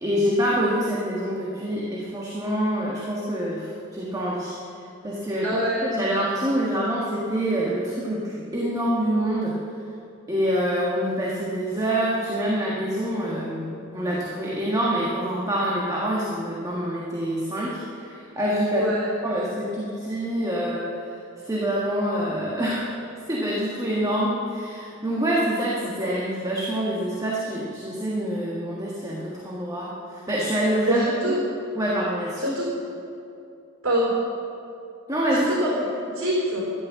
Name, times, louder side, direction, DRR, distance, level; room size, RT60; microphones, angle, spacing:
voice 1, 0.0-4.5 5.0-9.6 10.3-18.9 19.2-20.9 21.5-22.9 23.3-31.0 31.3-31.4 31.8-32.4 35.1-35.5, equal, 15° right, -5 dB, 1.7 m, -26 dB
voice 2, 5.4-6.0 18.7-19.1 30.9-31.4 32.4-32.6 33.8-34.1 35.3-36.6, equal, 80° right, -5 dB, 4.3 m, -25 dB
13.0 x 11.5 x 7.1 m, 2.7 s
head